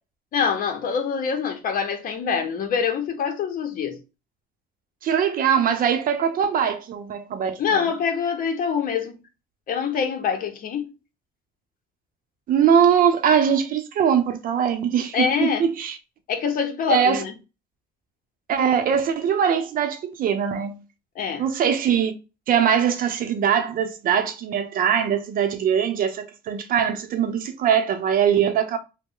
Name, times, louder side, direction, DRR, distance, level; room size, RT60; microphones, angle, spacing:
voice 1, 0.3-4.0 7.6-9.2 9.7-10.9 15.1-15.6 16.3-17.3 21.2-21.5, left 6 dB, 55° left, 0.8 m, -25 dB
voice 2, 5.0-7.8 12.5-16.0 16.9-17.2 18.5-20.8 21.4-22.1 22.5-28.8, right 8 dB, 55° right, 0.7 m, -21 dB
3.0 x 2.2 x 3.6 m
cardioid pair, 110°, 17 cm